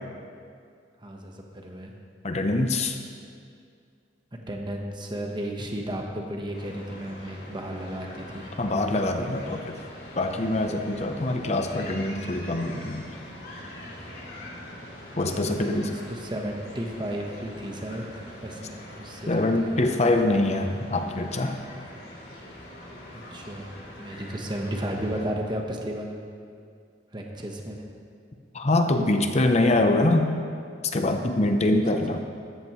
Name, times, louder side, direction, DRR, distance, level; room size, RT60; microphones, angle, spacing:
voice 1, 1.0-2.0 4.3-8.6 15.3-19.7 23.1-26.1 27.1-27.8 31.6-32.0, right 1 dB, 25° right, 1 dB, 1.1 m, -34 dB
voice 2, 2.2-2.9 8.6-9.8 10.2-13.1 15.2-16.0 19.3-21.6 28.5-30.3 30.9-32.2, left 2 dB, 40° left, 5 dB, 0.7 m, -24 dB
sound 1, 6.5-25.2, left 1 dB, 65° left, 3.4 m, -43 dB
14.0 x 13.5 x 3.1 m, 2.3 s
head